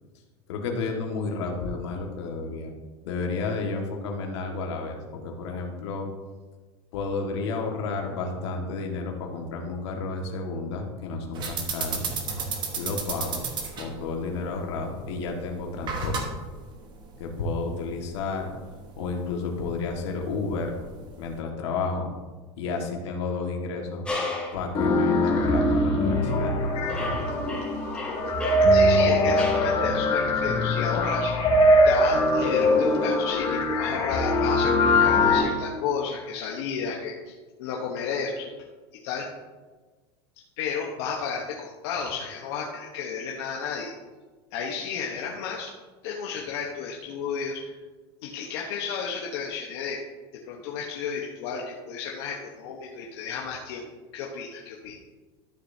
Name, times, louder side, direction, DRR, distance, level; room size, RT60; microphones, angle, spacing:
voice 1, 0.5-2.7 3.0-6.1 6.9-12.1 12.7-13.5 13.8-16.2 17.2-18.5 19.0-20.8 21.2-22.1 22.6-24.1 24.5-27.3, left 4 dB, 85° left, 1 dB, 1.8 m, -31 dB
sound 1, 11.3-21.4, right 5 dB, 30° right, 1.3 m, -35 dB
sound 2, 24.0-24.7 25.4-25.5 26.2-26.5 26.9-29.7, left 2 dB, 5° left, 2.5 m, -35 dB
sound 3, 24.7-35.4, left 1 dB, 40° left, 2.1 m, -22 dB
voice 2, 28.5-31.3 31.8-38.5 39.0-39.3 40.6-43.9 44.5-45.7 46.0-47.7 48.2-50.0 50.4-53.9 54.1-55.0, left 6 dB, 70° left, -1 dB, 1.1 m, -32 dB
12.5 x 6.9 x 2.8 m, 1.3 s
supercardioid pair, 140°, 14 cm